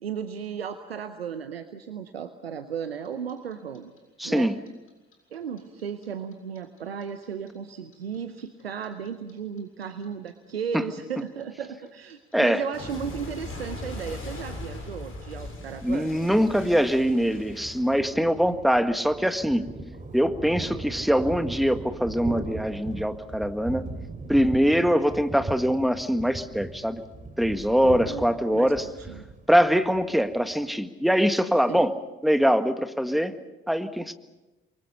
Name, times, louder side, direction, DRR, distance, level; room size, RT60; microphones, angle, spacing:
voice 1, 0.0-3.9 4.2-4.5 5.3-16.1 18.5-18.7 27.8-28.2 28.5-29.2 31.7-31.9, right 7 dB, 90° right, 10 dB, 0.8 m, -35 dB
Clock, 3.0-6.0 6.3-9.3 9.6-18.4, left 2 dB, 45° left, 7.5 m, -40 dB
voice 2, 4.2-4.6 12.3-12.6 15.8-19.7 20.1-23.9 24.3-27.0 27.4-28.9 29.5-31.9 32.2-33.3 33.7-34.1, equal, ahead, 9 dB, 1.8 m, -23 dB
Thunder, 15.9-30.7, right 2 dB, 25° right, 3.4 m, -39 dB
27.5 x 23.5 x 5.7 m, 1.0 s
figure-of-eight pair, 45°, 30 cm